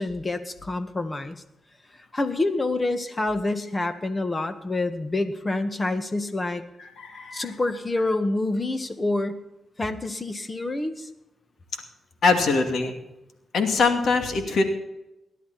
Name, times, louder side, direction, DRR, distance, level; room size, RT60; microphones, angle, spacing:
voice 1, 0.0-1.3 2.1-6.6 7.3-9.4 9.8-11.1, left 2 dB, 30° left, 9 dB, 1.8 m, -27 dB
voice 2, 7.0-7.4 12.2-12.9 13.5-14.6, left 4 dB, 70° left, 5 dB, 2.4 m, -22 dB
18.5 x 12.0 x 4.3 m, 0.94 s
cardioid pair, 65°, 0 cm